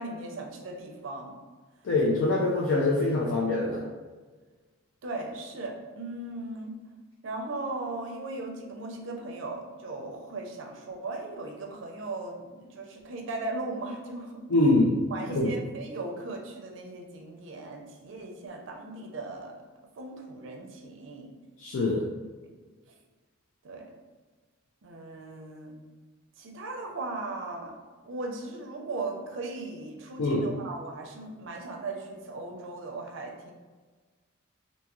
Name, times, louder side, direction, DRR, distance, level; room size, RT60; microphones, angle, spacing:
voice 1, 0.0-1.4 5.0-6.7 7.2-14.4 15.1-19.6 19.9-21.3 23.6-23.9 24.8-25.8 26.4-27.7 28.0-33.5, right 2 dB, 65° right, 2 dB, 0.4 m, -38 dB
voice 2, 1.8-3.8 14.5-15.0 15.3-15.5 21.6-22.0 30.2-30.5, left 2 dB, 75° left, -3 dB, 0.4 m, -24 dB
2.9 x 2.7 x 2.3 m, 1.4 s
head